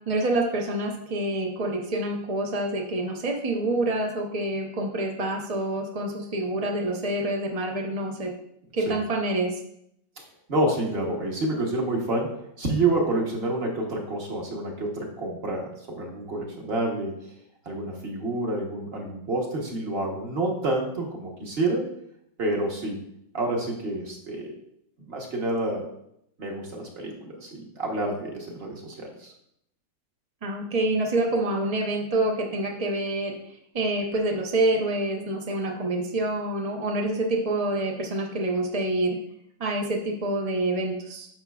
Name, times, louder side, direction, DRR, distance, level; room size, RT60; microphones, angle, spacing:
voice 1, 0.1-8.3 8.7-9.6 30.4-33.3 33.7-39.2 39.6-41.3, right 1 dB, 55° right, 0 dB, 0.4 m, -27 dB
voice 2, 10.5-17.2 17.6-21.8 22.4-23.0 23.3-24.5 25.0-25.9 26.4-29.3, right 2 dB, 40° right, 0 dB, 1.1 m, -28 dB
9.3 x 5.8 x 2.3 m, 0.74 s
omnidirectional pair, 2.1 m